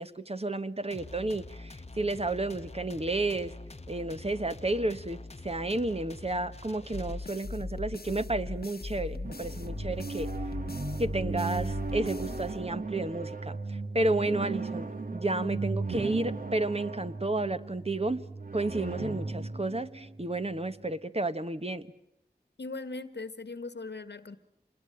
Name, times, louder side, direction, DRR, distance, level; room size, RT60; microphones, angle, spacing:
voice 1, 0.0-3.5 3.9-10.3 11.0-13.6 13.9-14.9 15.1-18.2 18.5-21.9, right 2 dB, 35° right, 10 dB, 1.2 m, -31 dB
sound 1, 0.9-7.6, left 2 dB, 40° left, 0.9 m, -46 dB
sound 2, 6.9-13.0, left 3 dB, 65° left, 1.1 m, -39 dB
sound 3, 9.2-20.9, right 3 dB, 55° right, 1.5 m, -36 dB
voice 2, 22.6-24.4, left 3 dB, 90° left, 13 dB, 1.4 m, -39 dB
26.5 x 20.5 x 9.0 m, 0.83 s
wide cardioid pair, 45°, 17 cm